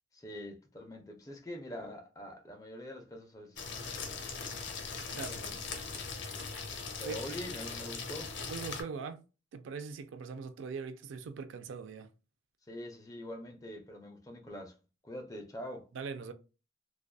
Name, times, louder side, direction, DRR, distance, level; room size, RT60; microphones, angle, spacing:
voice 1, 0.1-4.2 5.3-5.6 7.0-8.3 12.7-14.8 15.0-15.9, equal, 20° left, 0.4 m, -44 dB
sound 1, 3.6-8.8, left 4 dB, 75° left, 0.6 m, -40 dB
voice 2, 5.1-5.4 7.0-7.2 8.4-9.2 9.5-12.1 15.9-16.3, right 5 dB, 85° right, 0.3 m, -41 dB
2.5 x 2.2 x 2.2 m
head